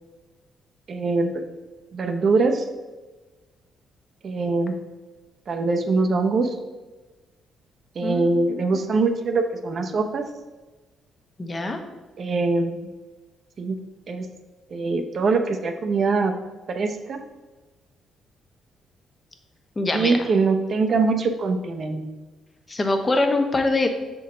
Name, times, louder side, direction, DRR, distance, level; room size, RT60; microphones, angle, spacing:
voice 1, 0.9-1.4 1.9-2.7 4.2-4.8 5.5-6.5 8.0-10.3 12.2-12.9 13.6-13.8 14.1-14.3 14.7-16.3 16.7-17.2 19.9-22.0, right 3 dB, 50° right, 6 dB, 0.6 m, -23 dB
voice 2, 8.0-8.4 11.4-11.8 19.8-20.1 22.7-23.9, left 2 dB, 25° left, 5 dB, 0.8 m, -23 dB
6.8 x 3.8 x 3.8 m, 1.2 s
cardioid pair, 90°, 0 cm